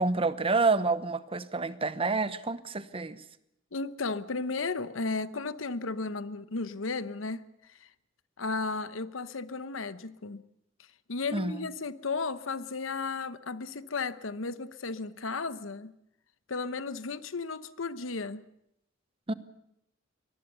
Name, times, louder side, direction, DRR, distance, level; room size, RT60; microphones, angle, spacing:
voice 1, 0.0-3.2 11.3-11.5 19.3-19.4, right 3 dB, 30° right, 14 dB, 0.9 m, -28 dB
voice 2, 3.7-7.9 8.4-10.4 11.1-15.9 16.5-18.4, left 4 dB, 85° left, 14 dB, 1.0 m, -34 dB
23.5 x 19.0 x 6.9 m, 0.80 s
head